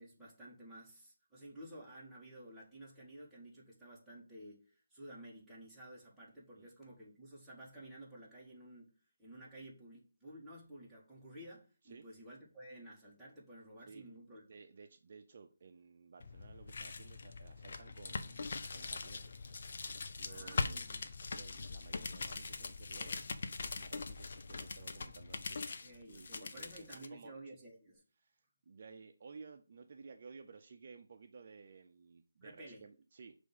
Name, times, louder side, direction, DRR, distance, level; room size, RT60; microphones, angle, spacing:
voice 1, 0.0-14.4 20.3-21.1 25.7-28.0 32.4-32.8, right 1 dB, ahead, 1.7 m, -53 dB
voice 2, 14.5-19.4 20.2-20.8 21.3-25.6 26.0-27.3 28.2-33.4, right 5 dB, 45° right, 0.6 m, -56 dB
sound 1, 16.2-27.1, left 4 dB, 50° left, 0.7 m, -42 dB
6.2 x 3.4 x 5.5 m
figure-of-eight pair, 160°, 0 cm